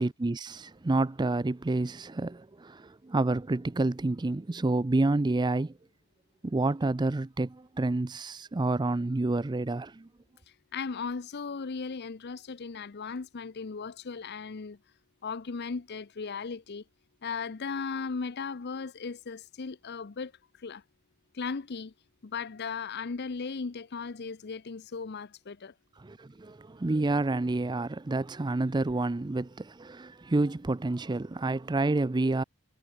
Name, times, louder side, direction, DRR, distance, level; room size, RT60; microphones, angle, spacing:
voice 1, 0.0-5.7 6.4-10.1 26.0-32.4, right 2 dB, 20° right, 0.4 m, -29 dB
voice 2, 10.7-14.8 15.2-16.8 17.2-20.3 20.6-20.8 21.3-21.9 22.2-25.7, left 5 dB, 45° left, 0.6 m, -37 dB
head